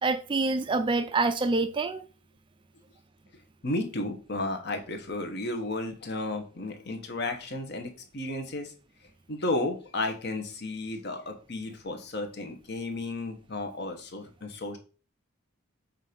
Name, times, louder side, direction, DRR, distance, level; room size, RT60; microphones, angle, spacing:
voice 1, 0.0-2.0, right 3 dB, 25° right, 0.3 m, -26 dB
voice 2, 3.6-8.7 9.3-14.8, left 2 dB, 55° left, 1.1 m, -33 dB
7.3 x 2.7 x 5.1 m
head